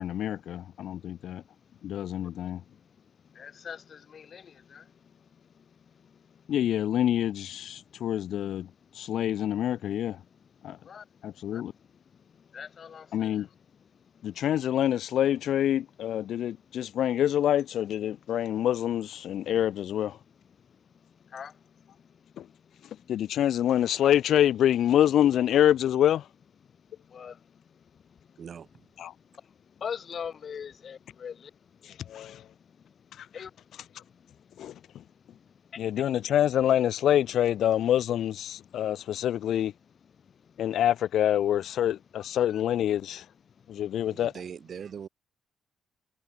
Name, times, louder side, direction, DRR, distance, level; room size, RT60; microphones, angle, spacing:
voice 1, 0.0-1.4 1.8-2.6 6.5-8.7 8.9-10.2 10.6-10.8 11.2-11.7 13.1-13.5 14.2-20.2 22.4-22.5 22.8-26.3 29.0-29.1 31.8-32.5 33.1-33.3 33.9-34.0 34.6-34.7 35.8-39.7 40.6-43.3 43.7-44.3, left 11 dB, 70° left, 0.6 m, -26 dB
voice 2, 0.8-1.3 2.2-2.4 2.8-2.9 3.3-5.7 5.9-6.5 10.3-10.5 10.8-11.1 11.4-11.9 12.3-13.5 14.1-14.4 20.6-20.7 21.0-23.1 27.0-28.4 29.4-31.5 31.8-32.2 32.6-32.9 33.3-36.0 38.6-38.7 40.4-40.7, left 7 dB, 50° left, 3.4 m, -45 dB
voice 3, 28.4-28.7 44.1-45.1, right 7 dB, 55° right, 4.9 m, -41 dB
cardioid pair, 90°, 0 cm